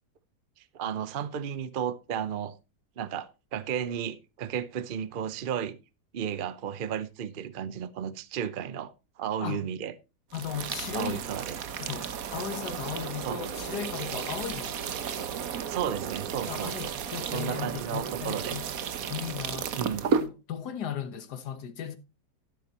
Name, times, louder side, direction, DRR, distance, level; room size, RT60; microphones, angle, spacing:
voice 1, 0.7-2.5 3.0-5.8 6.1-9.9 10.9-11.6 13.2-13.4 15.7-16.9 17.3-18.6 19.7-20.1, right 8 dB, 80° right, 0.4 m, -33 dB
voice 2, 10.3-11.3 11.8-15.4 16.5-18.7 19.1-19.8 20.1-21.9, left 9 dB, 60° left, 1.7 m, -37 dB
sound 1, 10.3-20.3, right 7 dB, 55° right, 1.2 m, -33 dB
12.0 x 11.0 x 2.9 m
omnidirectional pair, 2.0 m